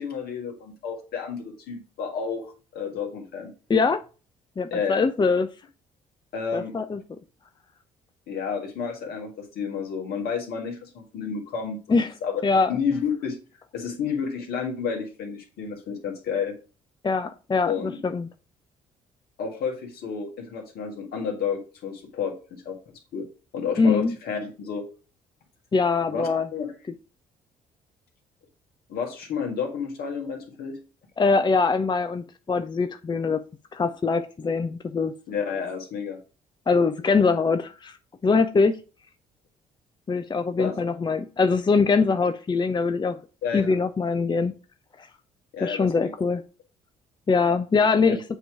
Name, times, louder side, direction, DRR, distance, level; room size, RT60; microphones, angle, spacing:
voice 1, 0.0-3.5 4.7-5.0 6.3-6.8 8.3-12.4 12.7-13.4 13.7-16.5 17.7-18.0 19.4-22.8 23.1-23.3 23.5-24.9 26.1-26.7 28.9-30.8 35.3-36.2 40.6-40.8 43.4-43.8 45.5-46.1 48.1-48.2, left 6 dB, 65° left, 3 dB, 1.7 m, -31 dB
voice 2, 3.7-4.0 4.6-5.5 6.5-7.0 11.9-12.1 12.4-12.7 17.0-18.3 23.8-24.1 25.7-26.5 31.2-33.4 33.7-35.1 36.7-38.0 38.2-38.8 40.1-43.2 43.5-44.5 45.0-45.1 45.6-46.4 47.3-48.2, left 4 dB, 25° left, 9 dB, 0.6 m, -23 dB
7.8 x 3.0 x 4.8 m, 0.35 s
hypercardioid pair, 50°, 18 cm